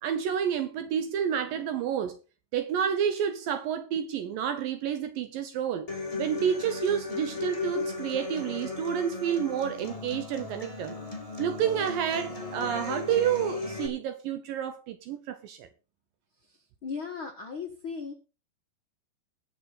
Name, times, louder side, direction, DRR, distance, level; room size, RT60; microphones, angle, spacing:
voice 1, 0.0-2.2 2.5-5.9 6.2-11.0 11.4-15.7, right 8 dB, 75° right, 2.2 m, -29 dB
Human voice / Acoustic guitar, 5.9-13.9, left 4 dB, 15° left, 1.6 m, -36 dB
voice 2, 16.4-18.1, left 5 dB, 60° left, 1.3 m, -37 dB
20.0 x 7.1 x 4.0 m
omnidirectional pair, 4.8 m